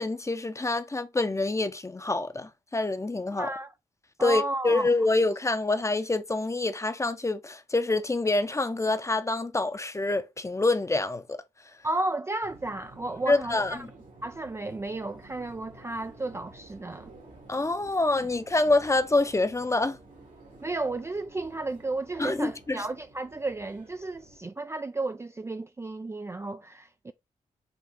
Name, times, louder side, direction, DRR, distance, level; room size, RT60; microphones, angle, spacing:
voice 1, 0.0-3.5 4.2-11.4 13.3-13.9 17.5-20.0 22.2-22.8, left 2 dB, 20° left, 0.7 m, -26 dB
voice 2, 3.4-3.7 4.2-4.9 11.8-13.8 14.2-17.1 20.6-27.1, right 2 dB, 20° right, 0.3 m, -33 dB
Subway metro underground, 12.4-24.4, right 2 dB, 70° right, 1.8 m, -51 dB
5.8 x 2.3 x 3.6 m
cardioid pair, 55°, 14 cm